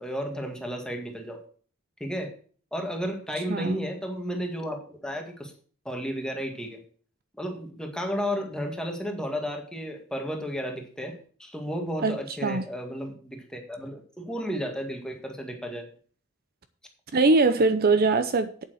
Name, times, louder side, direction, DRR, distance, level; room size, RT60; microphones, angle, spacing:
voice 1, 0.0-1.4 2.0-2.3 2.7-5.5 5.9-6.8 7.4-15.9, equal, 5° left, 3 dB, 1.9 m, -33 dB
voice 2, 3.5-3.8 12.0-12.7 17.1-18.6, right 3 dB, 45° right, 10 dB, 0.6 m, -22 dB
8.6 x 7.4 x 6.2 m, 0.44 s
head